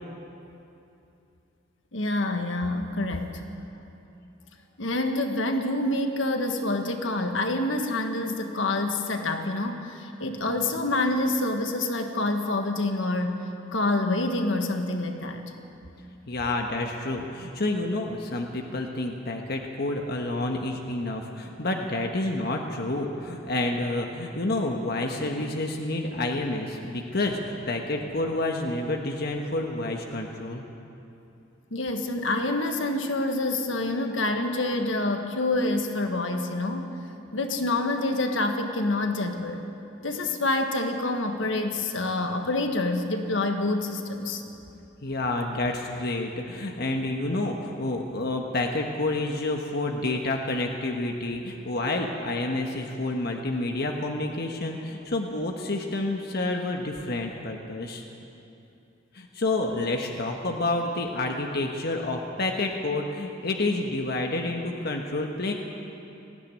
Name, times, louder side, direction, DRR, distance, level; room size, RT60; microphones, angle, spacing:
voice 1, 1.9-3.4 4.8-13.4 13.7-15.4 31.7-36.9 37.3-39.6 40.0-44.4, left 2 dB, 70° left, 5 dB, 1.6 m, -27 dB
voice 2, 16.3-30.6 45.0-58.0 59.1-65.5, left 2 dB, 55° left, 2 dB, 1.4 m, -29 dB
20.0 x 15.5 x 9.8 m, 2.8 s
head